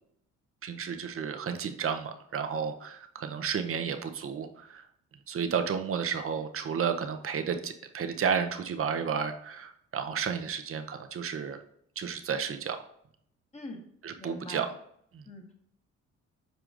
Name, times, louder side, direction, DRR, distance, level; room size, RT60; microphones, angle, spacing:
voice 1, 0.6-4.8 5.3-11.6 12.0-12.8 14.0-14.7 15.1-15.2, right 7 dB, 45° right, 7 dB, 0.7 m, -32 dB
voice 2, 14.2-14.7 15.3-15.5, left 2 dB, 20° left, 1 dB, 1.5 m, -43 dB
7.9 x 4.9 x 2.5 m, 0.69 s
cardioid pair, 90°, 30 cm